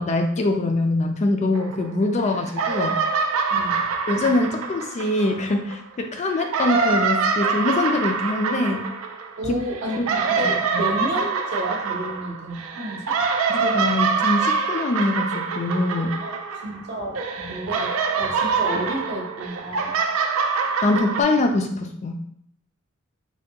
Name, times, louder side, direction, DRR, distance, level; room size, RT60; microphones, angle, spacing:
voice 1, 0.0-3.0 4.1-8.8 9.5-9.6 10.0-10.1 13.5-16.2 17.4-17.5 20.8-22.2, left 2 dB, 35° left, 3 dB, 0.3 m, -23 dB
sound 1, 1.5-2.2 2.5-5.8 6.3-16.9 17.2-21.2, right 5 dB, 70° right, 0.3 m, -25 dB
voice 2, 3.5-3.8 9.4-13.1 16.2-16.4 16.6-17.9 18.2-20.0, right 1 dB, 55° right, 0 dB, 0.7 m, -31 dB
3.3 x 2.2 x 2.8 m, 0.68 s
head